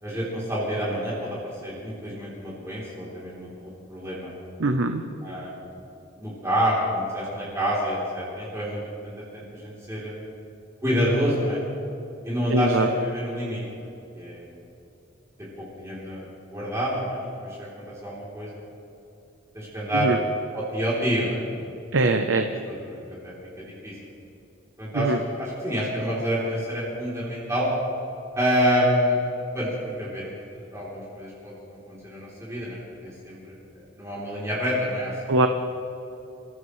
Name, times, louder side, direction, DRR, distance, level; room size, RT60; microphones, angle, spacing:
voice 1, 0.0-4.3 5.2-5.7 6.2-10.3 10.8-11.6 12.2-13.9 14.1-14.4 15.6-18.6 19.5-20.2 20.5-21.4 22.7-23.3 23.7-23.9 24.8-27.7 28.3-29.2 29.5-29.7 30.0-32.8 33.0-33.5 34.0-35.3, equal, 15° right, -8 dB, 3.4 m, -28 dB
voice 2, 4.6-5.0 12.5-12.9 19.9-20.2 21.9-22.5 24.9-25.2 35.3-35.5, right 2 dB, 85° right, 6 dB, 0.8 m, -22 dB
26.5 x 15.5 x 3.2 m, 2.9 s
head